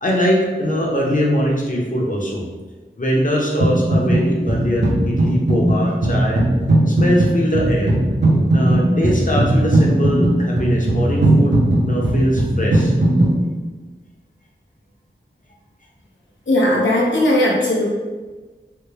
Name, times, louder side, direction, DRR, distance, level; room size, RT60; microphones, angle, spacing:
voice 1, 0.0-2.5 3.0-6.4 6.9-7.9 8.5-11.6 11.8-12.9, equal, 45° left, -2 dB, 0.7 m, -21 dB
sound 1, 3.6-4.2 4.5-13.3, right 1 dB, 70° right, 0.8 m, -17 dB
voice 2, 16.5-17.9, left 1 dB, 85° left, -4 dB, 0.6 m, -17 dB
3.4 x 2.2 x 3.2 m, 1.3 s
wide cardioid pair, 40°, 19 cm